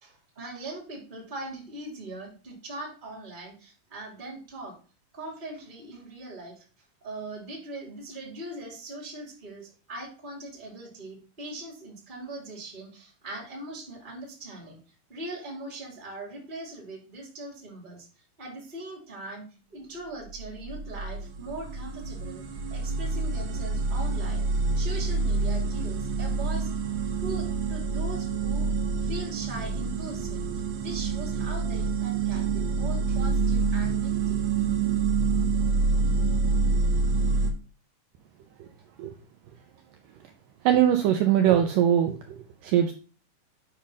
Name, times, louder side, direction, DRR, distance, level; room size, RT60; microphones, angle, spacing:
voice 1, 0.0-4.8 5.1-6.6 7.0-14.8 15.1-18.1 18.4-22.4 22.7-24.4 24.7-26.7 27.2-28.7 29.0-30.4 30.8-34.5, right 2 dB, 20° right, -2 dB, 1.6 m, -40 dB
sound 1, 20.3-37.5, right 4 dB, 65° right, 2.0 m, -27 dB
voice 2, 40.6-42.9, right 10 dB, 80° right, 5 dB, 2.0 m, -22 dB
8.5 x 3.2 x 5.4 m, 0.37 s
omnidirectional pair, 4.4 m